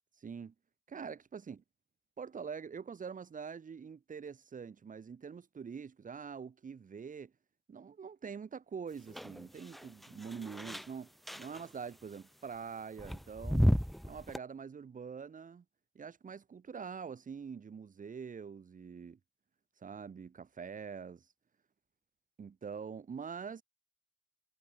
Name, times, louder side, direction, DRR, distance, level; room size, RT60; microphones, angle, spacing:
voice 1, 0.2-0.5 0.9-1.6 2.2-7.3 7.7-11.1 11.4-13.7 14.0-15.6 15.9-19.2 19.8-21.3 22.4-23.6, right 6 dB, 45° right, 1.1 m, -45 dB
sound 1, 9.1-10.9 11.3-11.7 13.0-14.4, equal, ahead, 0.4 m, -33 dB
cardioid pair, 70°, 19 cm